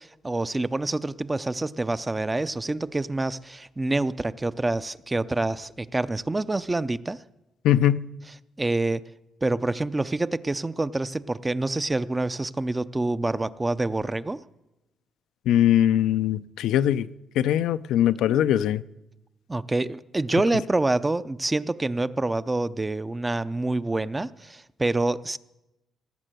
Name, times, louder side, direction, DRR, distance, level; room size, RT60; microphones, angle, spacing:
voice 1, 0.0-7.2 8.6-9.0 9.4-14.4 19.5-25.4, right 2 dB, 15° right, 15 dB, 0.5 m, -27 dB
voice 2, 7.6-8.0 15.5-17.1 17.4-18.8, left 11 dB, 85° left, 13 dB, 0.4 m, -21 dB
18.0 x 6.6 x 7.7 m, 0.97 s
cardioid pair, 90°, 0 cm